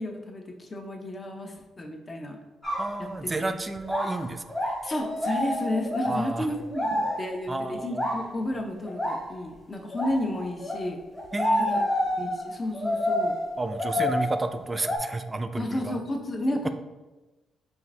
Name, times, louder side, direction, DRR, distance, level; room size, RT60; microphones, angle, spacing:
voice 1, 0.0-2.4 3.0-3.5 4.8-11.0 11.6-11.8 12.2-13.4 15.6-16.7, left 1 dB, 30° left, 3 dB, 0.7 m, -32 dB
sound 1, 2.6-3.0 3.8-7.3 7.9-8.3 8.8-9.3 9.9-10.8 11.1-15.0, left 1 dB, 15° left, 1.2 m, -28 dB
voice 2, 2.8-4.7 6.1-6.5 7.5-8.0 11.3-11.9 13.6-16.0 16.6-16.7, right 2 dB, 20° right, 8 dB, 0.3 m, -31 dB
4.6 x 2.6 x 3.3 m, 1.1 s
cardioid pair, 90°, 0 cm